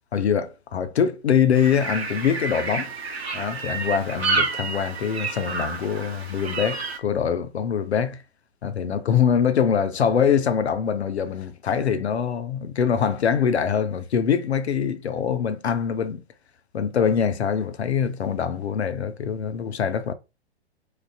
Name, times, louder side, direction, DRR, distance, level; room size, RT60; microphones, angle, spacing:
voice 1, 0.1-2.9 3.3-8.2 8.6-16.2 16.7-20.1, left 7 dB, 75° left, 0.5 m, -23 dB
sound 1, 1.5-7.0, right 4 dB, 70° right, 0.7 m, -29 dB
2.4 x 2.2 x 2.2 m
figure-of-eight pair, 115°, 33 cm